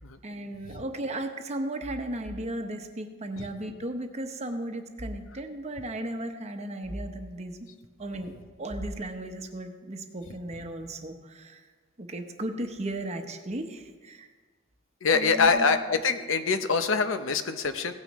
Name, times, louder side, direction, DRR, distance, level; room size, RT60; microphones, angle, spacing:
voice 1, 0.2-7.7 8.0-11.6 12.0-14.3 15.1-15.6, right 1 dB, 35° right, 5 dB, 0.9 m, -35 dB
voice 2, 15.0-17.9, left 5 dB, 80° left, 9 dB, 0.7 m, -25 dB
17.0 x 9.4 x 3.1 m, 1.4 s
head